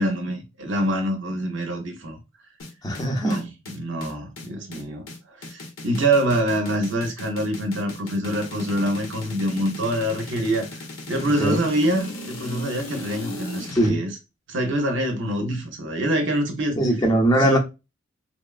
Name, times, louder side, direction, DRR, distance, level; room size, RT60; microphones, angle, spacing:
voice 1, 0.0-2.2 3.2-14.2 14.5-16.8 17.4-17.6, right 1 dB, 65° right, 0.6 m, -25 dB
sound 1, 2.6-13.9, left 2 dB, 90° left, 0.9 m, -37 dB
voice 2, 2.8-3.4 11.4-11.6 13.7-14.0 16.8-17.6, right 1 dB, 20° left, 0.6 m, -20 dB
3.0 x 2.1 x 2.3 m
head